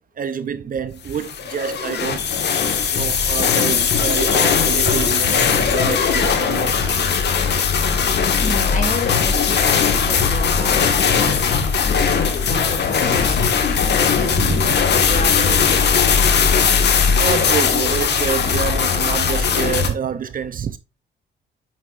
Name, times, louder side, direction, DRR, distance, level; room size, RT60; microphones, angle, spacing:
voice 1, 0.2-2.3 2.9-7.1 14.5-14.6 17.2-20.8, right 7 dB, 45° right, 0.6 m, -27 dB
sound 1, 1.1-19.9, left 6 dB, 60° left, 1.6 m, -18 dB
voice 2, 8.3-14.6 14.9-16.7, left 2 dB, 40° left, 3.7 m, -31 dB
9.0 x 6.5 x 2.5 m
cardioid pair, 90°, 20 cm